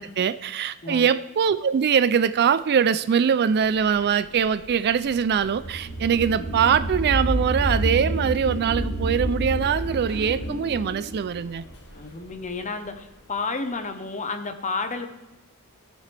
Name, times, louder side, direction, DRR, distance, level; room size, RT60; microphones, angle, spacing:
voice 1, 0.0-11.6, right 7 dB, 45° right, 13 dB, 0.4 m, -22 dB
sound 1, 3.8-12.8, right 1 dB, 50° left, 1.6 m, -29 dB
voice 2, 11.9-15.1, left 4 dB, 35° left, 7 dB, 0.9 m, -31 dB
18.5 x 6.7 x 3.4 m, 1.0 s
head